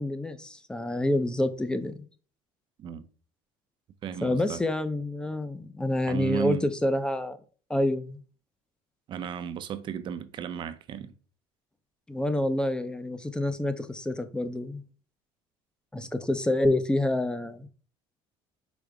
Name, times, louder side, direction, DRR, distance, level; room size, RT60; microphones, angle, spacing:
voice 1, 0.0-2.0 4.2-7.4 7.7-8.2 12.1-14.8 15.9-17.7, left 1 dB, 10° left, 0.5 m, -28 dB
voice 2, 4.0-4.6 6.1-6.7 9.1-11.1, right 9 dB, 45° right, 0.5 m, -34 dB
5.0 x 2.1 x 4.7 m
cardioid pair, 115°, 11 cm